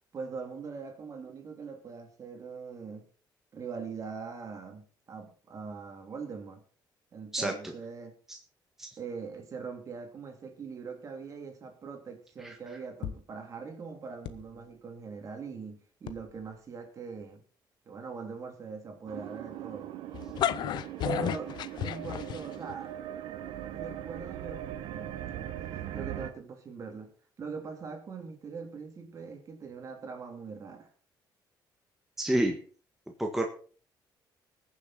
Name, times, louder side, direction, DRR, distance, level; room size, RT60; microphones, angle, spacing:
voice 1, 0.1-3.0 3.5-6.6 7.1-8.2 9.0-17.4 17.8-19.9 21.0-22.9 23.7-27.1 27.4-30.9, right 5 dB, 40° right, 3.2 m, -42 dB
sound 1, 13.0-13.3 14.2-14.8 16.0-16.7 17.2-17.3, left 10 dB, 90° left, 1.0 m, -43 dB
sound 2, 19.1-26.3, right 12 dB, 90° right, 1.3 m, -40 dB
sound 3, 20.1-22.7, left 11 dB, 65° left, 0.6 m, -32 dB
voice 2, 32.2-32.6 33.2-33.5, right 1 dB, 5° right, 1.6 m, -28 dB
21.0 x 7.2 x 4.3 m
cardioid pair, 125°, 8 cm